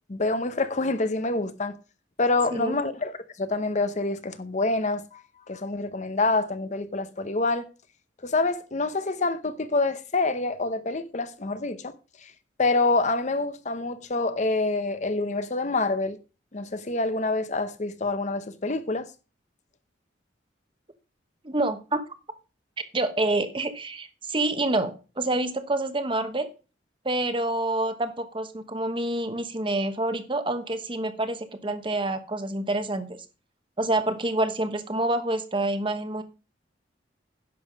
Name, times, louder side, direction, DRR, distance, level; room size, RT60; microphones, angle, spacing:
voice 1, 0.1-1.7 2.2-7.6 8.2-11.9 12.2-12.3 12.6-16.2 16.5-19.1, left 3 dB, 40° left, 0.8 m, -27 dB
voice 2, 21.4-22.0 22.9-26.5 27.0-33.2 33.8-36.2, right 2 dB, 30° right, 1.1 m, -27 dB
10.5 x 7.2 x 5.1 m
head